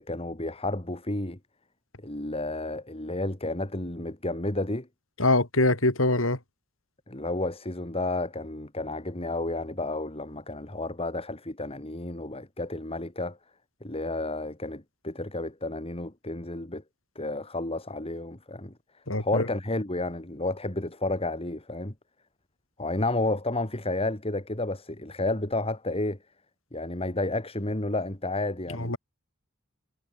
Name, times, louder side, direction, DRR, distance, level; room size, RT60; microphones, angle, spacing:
voice 1, 0.0-1.4 2.0-4.9 7.1-13.4 13.8-16.8 17.1-18.7 19.2-21.9 22.8-26.2 26.7-29.0, left 2 dB, 30° left, 3.1 m, -31 dB
voice 2, 5.2-6.4 19.1-19.5 28.7-29.0, left 2 dB, 75° left, 5.3 m, -23 dB
head